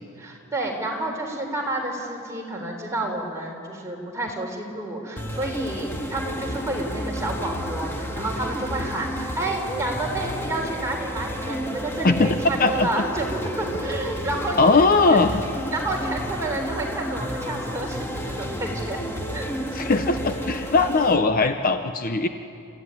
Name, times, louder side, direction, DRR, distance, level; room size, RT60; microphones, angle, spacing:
voice 1, 0.2-14.6 15.1-15.2 15.7-19.0 19.3-19.5, right 2 dB, 15° right, 0 dB, 3.7 m, -30 dB
sound 1, 5.2-21.2, equal, 10° left, 1.8 m, -31 dB
voice 2, 12.0-12.9 14.6-15.3 19.7-22.3, left 3 dB, 40° left, 8 dB, 0.7 m, -20 dB
28.0 x 15.0 x 9.8 m, 2.7 s
head